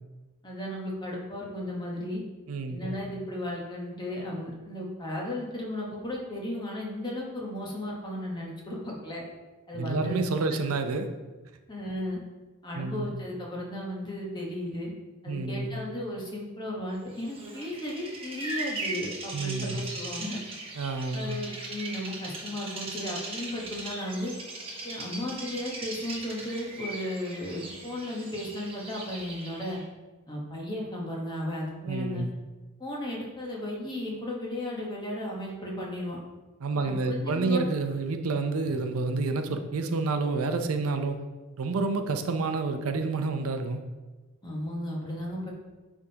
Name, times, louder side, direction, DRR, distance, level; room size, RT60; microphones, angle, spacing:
voice 1, 0.4-2.2 2.7-9.2 9.7-10.2 11.7-12.2 12.6-14.9 15.2-20.4 21.1-24.3 24.8-29.8 30.3-32.2 32.8-36.2 36.7-37.7 44.4-45.5, left 1 dB, 20° left, -3 dB, 1.1 m, -35 dB
voice 2, 2.5-2.8 9.8-11.1 12.7-13.1 15.3-15.7 19.3-19.8 20.8-21.3 31.9-32.3 36.6-41.2 41.6-43.8, right 3 dB, 90° right, 7 dB, 0.6 m, -29 dB
Bird vocalization bird call bird song, 17.2-29.8, right 2 dB, 25° right, 1.0 m, -39 dB
9.6 x 3.6 x 2.8 m, 1.2 s
head